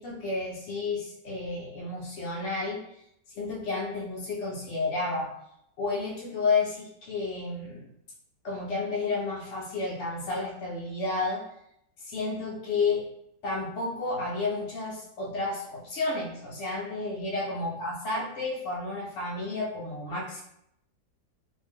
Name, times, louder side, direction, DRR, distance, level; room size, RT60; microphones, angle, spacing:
voice 1, 0.0-2.8 3.4-5.3 5.8-7.9 8.4-11.4 12.0-13.1 13.4-20.4, left 3 dB, 70° left, -5 dB, 0.7 m, -31 dB
2.6 x 2.1 x 3.4 m, 0.76 s
omnidirectional pair, 1.7 m